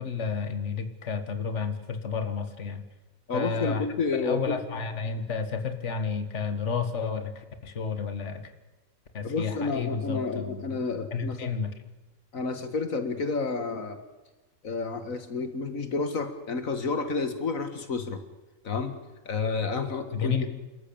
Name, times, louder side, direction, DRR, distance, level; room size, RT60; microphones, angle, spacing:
voice 1, 0.0-2.8 3.3-3.9 4.1-8.5 9.1-10.8 11.1-11.7 20.1-20.5, left 5 dB, 55° left, 8 dB, 2.0 m, -31 dB
voice 2, 3.3-4.6 9.2-11.5 12.3-14.0 14.6-18.2 18.6-18.9 19.3-20.5, left 4 dB, 75° left, 9 dB, 2.1 m, -30 dB
28.0 x 14.0 x 8.7 m, 1.1 s
omnidirectional pair, 1.4 m